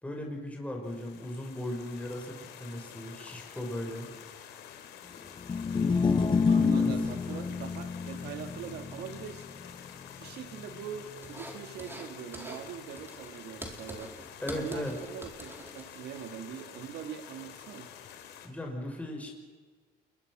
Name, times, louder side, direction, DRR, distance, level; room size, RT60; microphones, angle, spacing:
voice 1, 0.0-4.1 6.7-7.0 14.4-15.0 18.4-19.3, left 1 dB, 10° left, 1 dB, 5.3 m, -37 dB
sound 1, 0.8-18.5, left 9 dB, 80° left, 3.2 m, -49 dB
sound 2, 5.4-11.7, left 5 dB, 30° left, 1.4 m, -30 dB
voice 2, 6.5-9.5 10.2-14.1 14.5-17.9, right 8 dB, 75° right, 7 dB, 2.3 m, -42 dB
sound 3, 11.2-12.1 12.3-12.7 12.9-16.2, right 1 dB, 15° right, 4.2 m, -45 dB
28.5 x 22.5 x 6.3 m, 1.4 s
cardioid pair, 110°, 17 cm